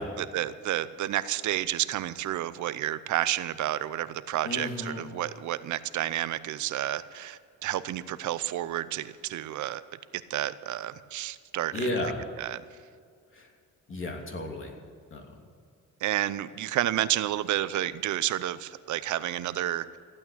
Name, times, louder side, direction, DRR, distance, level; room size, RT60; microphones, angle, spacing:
voice 1, 0.2-9.8 10.3-11.9 12.4-12.6 16.0-19.9, right 13 dB, 75° right, 15 dB, 0.7 m, -30 dB
voice 2, 4.4-5.0 11.7-12.2 13.3-13.5 13.9-14.7 15.1-15.2, left 1 dB, 40° left, 2 dB, 3.0 m, -33 dB
15.0 x 8.8 x 8.8 m, 2.2 s
cardioid pair, 90°, 30 cm